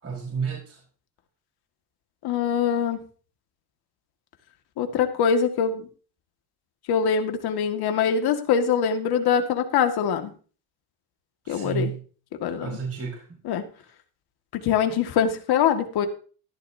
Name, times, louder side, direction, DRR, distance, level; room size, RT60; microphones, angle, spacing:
voice 1, 0.0-0.8 11.4-12.0 12.6-13.4, right 6 dB, 35° right, 5.0 m, -31 dB
voice 2, 2.2-3.0 4.8-5.9 6.9-10.3 11.5-11.9 12.4-12.7 13.5-13.6 14.5-16.1, left 7 dB, 70° left, 2.1 m, -23 dB
15.0 x 12.5 x 2.8 m
cardioid pair, 120°, 39 cm